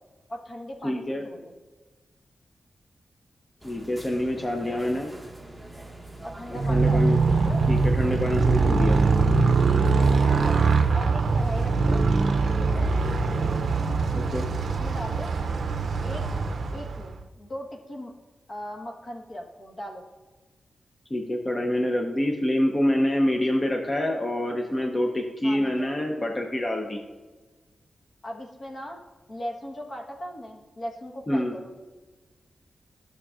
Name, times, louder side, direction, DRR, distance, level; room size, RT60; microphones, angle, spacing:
voice 1, 0.3-1.5 4.7-4.9 6.2-7.6 8.6-8.7 10.3-10.5 10.9-12.0 12.6-12.9 14.8-15.3 16.0-16.3 16.7-18.1 18.5-20.0 25.4-25.9 28.2-29.0 29.3-31.7, equal, 50° left, 0 dB, 1.2 m, -38 dB
voice 2, 0.8-1.2 3.6-5.1 6.5-7.2 7.7-9.0 14.1-14.5 21.1-27.0 31.3-31.6, left 1 dB, 30° left, 2 dB, 0.7 m, -26 dB
sound 1, 3.6-11.0, right 1 dB, 5° right, 0.9 m, -43 dB
Motorcycle, 6.5-17.2, right 4 dB, 75° right, 0.4 m, -22 dB
12.5 x 6.6 x 2.4 m, 1.3 s
cardioid pair, 80°, 0 cm